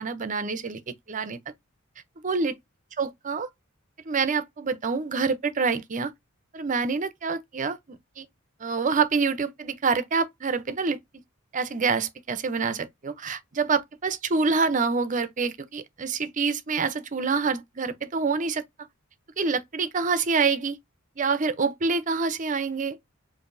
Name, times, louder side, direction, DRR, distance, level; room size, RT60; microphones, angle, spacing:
voice 1, 0.0-1.4 2.2-2.5 3.0-3.5 4.1-6.1 6.5-7.8 8.2-8.3 8.6-11.0 11.5-18.6 19.4-20.8 21.2-23.0, right 4 dB, 40° right, 0.6 m, -26 dB
4.9 x 2.6 x 2.5 m
head